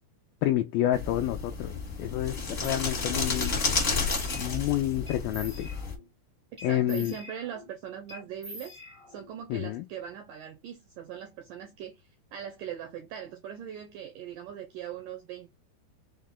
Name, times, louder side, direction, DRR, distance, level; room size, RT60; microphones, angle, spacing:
voice 1, 0.4-3.6 4.4-5.7 6.6-7.1 9.5-9.8, left 13 dB, 85° left, 2.0 m, -29 dB
sound 1, 0.9-6.0, left 4 dB, 45° left, 0.9 m, -31 dB
sound 2, 2.6-2.8 3.4-3.6 3.9-4.7 5.1-6.1 6.6-7.7 8.1-9.3, left 1 dB, 45° right, 0.6 m, -45 dB
voice 2, 6.7-8.8 9.1-15.5, right 9 dB, 90° right, 1.9 m, -40 dB
6.4 x 2.2 x 3.6 m
omnidirectional pair, 4.7 m